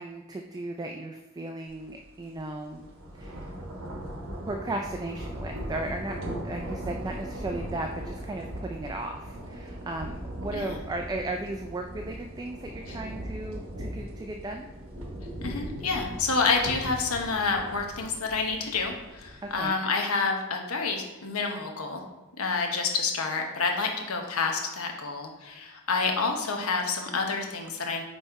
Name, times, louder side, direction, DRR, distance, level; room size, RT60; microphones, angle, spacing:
voice 1, 0.0-2.8 3.1-3.5 4.5-6.2 6.4-14.7 19.4-19.8, right 2 dB, 20° right, 3 dB, 0.3 m, -36 dB
sound 1, 1.8-2.0 2.4-19.7, equal, 65° right, 1.2 m, -39 dB
voice 2, 15.4-22.0 22.4-28.0, left 4 dB, 75° left, 2 dB, 1.0 m, -28 dB
5.5 x 4.1 x 4.6 m, 1.1 s
head